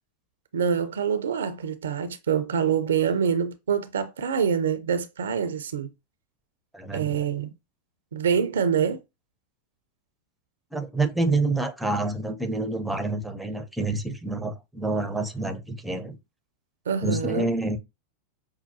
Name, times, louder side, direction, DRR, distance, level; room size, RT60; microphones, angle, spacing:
voice 1, 0.5-5.9 6.9-7.5 8.1-9.0 16.9-17.5, right 7 dB, 65° right, 0.5 m, -25 dB
voice 2, 6.7-7.2 10.7-16.2 17.0-17.8, right 2 dB, 5° right, 0.6 m, -27 dB
5.5 x 2.2 x 2.7 m
figure-of-eight pair, 90°, 0 cm